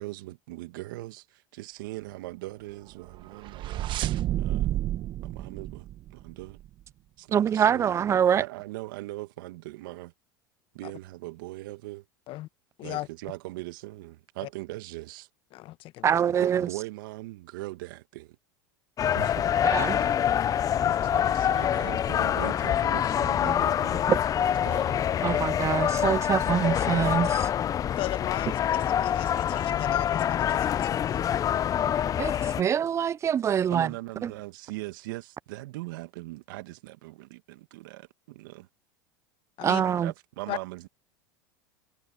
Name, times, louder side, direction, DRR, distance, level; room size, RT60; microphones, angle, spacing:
voice 1, 0.0-3.9 4.4-4.7 5.2-6.6 7.2-7.9 8.3-10.1 10.7-12.0 12.8-15.3 16.4-18.4 19.1-19.4 20.4-20.5 21.0-24.0 24.3-25.0 33.7-38.7 40.0-40.9, right 19 dB, 70° right, 1.8 m, -40 dB
sound 1, 3.0-6.7, right 13 dB, 45° right, 1.2 m, -31 dB
voice 2, 7.3-8.4 16.0-16.7 19.6-20.1 24.1-24.2 25.2-27.5 32.2-33.9 34.2-34.3 39.6-40.1, right 8 dB, 25° right, 0.3 m, -25 dB
voice 3, 15.5-16.1 20.8-21.2 25.3-25.5 28.0-31.2 39.6-39.8 40.5-40.6, left 16 dB, 50° left, 1.3 m, -36 dB
sound 2, 19.0-32.6, left 10 dB, 30° left, 0.6 m, -26 dB
hypercardioid pair, 90°, 12 cm